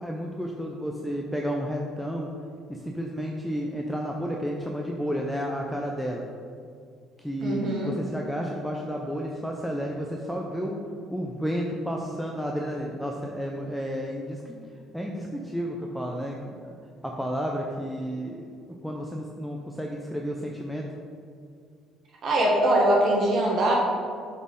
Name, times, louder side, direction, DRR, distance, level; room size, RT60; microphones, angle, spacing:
voice 1, 0.0-2.3 2.7-6.2 7.2-10.8 11.1-14.6 14.9-16.8 17.0-18.5 18.8-20.9, equal, ahead, 0 dB, 0.5 m, -31 dB
voice 2, 7.4-7.9 22.2-23.7, right 1 dB, 50° right, -2 dB, 1.2 m, -22 dB
7.0 x 4.3 x 3.7 m, 2.3 s
cardioid pair, 100°, 0 cm